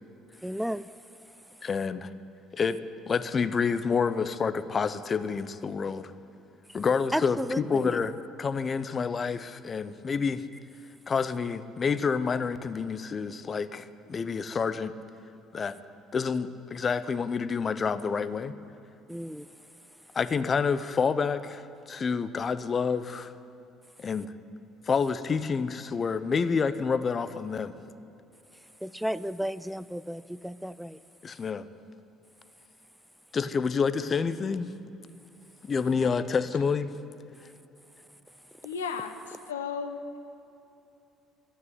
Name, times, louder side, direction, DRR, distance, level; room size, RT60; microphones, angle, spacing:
voice 1, 0.4-1.7 6.7-6.8 7.1-8.0 19.1-20.1 28.5-31.0 38.5-38.6, equal, 5° right, 15 dB, 0.4 m, -35 dB
voice 2, 1.6-2.1 2.5-2.8 3.1-6.1 6.7-7.4 7.7-8.1 8.4-10.4 11.1-14.9 15.5-15.8 16.1-18.5 20.1-21.6 21.9-23.3 24.0-24.3 24.9-27.7 31.2-31.7 33.3-34.7 35.7-36.9, left 5 dB, 40° left, 13 dB, 0.7 m, -28 dB
voice 3, 35.8-36.3 38.6-39.2 39.5-40.0, left 6 dB, 90° left, 7 dB, 0.8 m, -35 dB
12.5 x 9.5 x 9.5 m, 2.8 s
hypercardioid pair, 60°, 0 cm